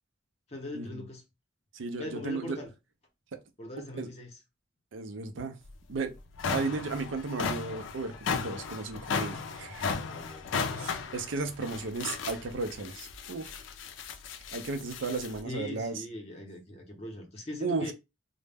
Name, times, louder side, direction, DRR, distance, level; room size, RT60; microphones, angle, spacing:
voice 1, 0.5-1.2 2.0-2.7 3.6-4.4 10.1-11.0 15.4-17.9, left 1 dB, 35° left, 0.6 m, -41 dB
voice 2, 1.7-2.6 3.3-3.4 3.8-4.1 4.9-5.6 5.9-6.1 6.5-9.9 10.8-13.6 14.5-15.9 17.6-17.9, right 3 dB, 80° right, 0.5 m, -35 dB
sound 1, 5.7-5.8 6.2-15.4, left 5 dB, 80° left, 0.4 m, -35 dB
2.1 x 2.0 x 3.3 m
head